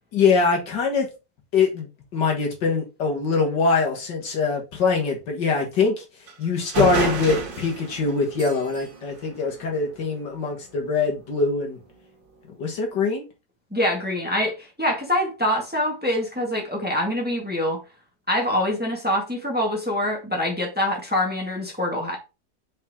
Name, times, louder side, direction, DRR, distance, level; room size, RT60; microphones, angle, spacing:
voice 1, 0.1-1.1 1.5-6.0 6.4-11.8 12.6-13.3, left 4 dB, 70° left, 2.2 m, -23 dB
sound 1, 6.3-6.4 6.7-10.1, right 4 dB, 80° right, 2.2 m, -30 dB
voice 2, 13.7-17.8 18.3-22.2, left 1 dB, 5° right, 1.8 m, -25 dB
5.4 x 5.3 x 3.7 m
omnidirectional pair, 2.0 m